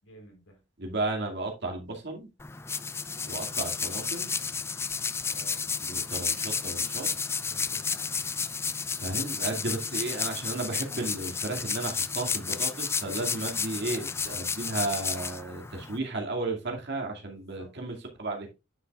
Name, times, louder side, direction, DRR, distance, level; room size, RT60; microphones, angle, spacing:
voice 1, 0.0-0.6 5.3-5.6 7.4-8.1 17.3-17.7, equal, 75° left, 3.9 m, -52 dB
voice 2, 0.8-2.3 3.2-4.3 5.9-7.1 9.0-18.5, right 2 dB, 55° right, 2.2 m, -34 dB
sound 1, 2.4-16.0, left 5 dB, 15° left, 0.3 m, -32 dB
9.4 x 7.3 x 2.4 m
head